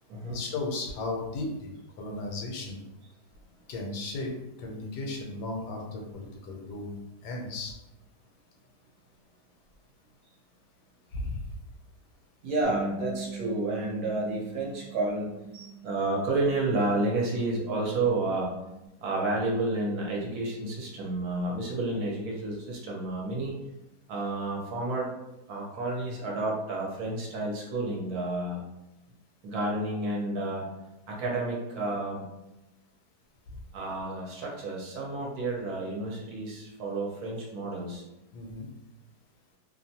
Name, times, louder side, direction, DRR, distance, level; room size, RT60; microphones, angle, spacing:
voice 1, 0.3-1.7 2.0-2.8 3.7-7.0 7.2-7.8 11.1-11.4 33.5-33.6 38.3-38.7, left 2 dB, 75° left, 0 dB, 1.1 m, -35 dB
voice 2, 12.4-18.5 19.0-23.5 24.1-25.1 25.5-28.6 29.4-30.6 31.1-32.3 33.7-38.0, right 2 dB, 70° right, -2 dB, 1.1 m, -30 dB
Bass guitar, 12.6-18.9, right 4 dB, 5° right, 0.6 m, -43 dB
2.8 x 2.1 x 2.7 m, 0.94 s
omnidirectional pair, 1.8 m